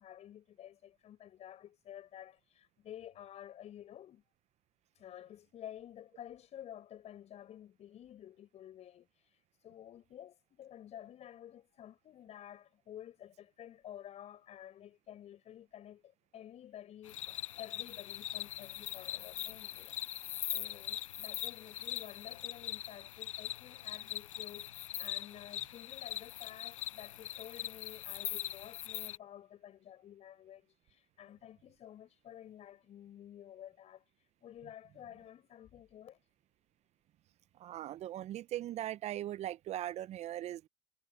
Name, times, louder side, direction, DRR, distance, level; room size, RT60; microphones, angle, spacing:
voice 1, 0.0-4.2 5.0-20.1 20.5-24.7 25.0-34.0 34.4-36.2, left 11 dB, 40° left, 5.7 m, -51 dB
sound 1, 17.0-29.2, left 13 dB, 80° left, 0.6 m, -41 dB
voice 2, 37.6-40.7, right 13 dB, 45° right, 1.0 m, -39 dB
hypercardioid pair, 80°, 16 cm